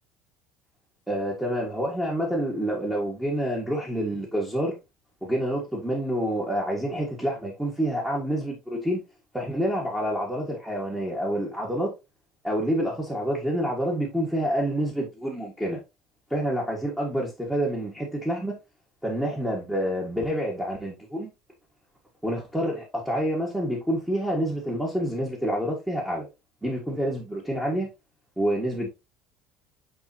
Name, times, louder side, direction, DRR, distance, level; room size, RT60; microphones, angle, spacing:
voice 1, 1.1-4.7 5.2-9.0 9.3-11.9 12.4-15.8 16.3-18.6 19.0-21.3 22.2-26.3 26.6-27.9 28.4-28.9, equal, 5° right, 1.8 m, -28 dB
9.6 x 3.7 x 2.9 m
cardioid pair, 140°, 0 cm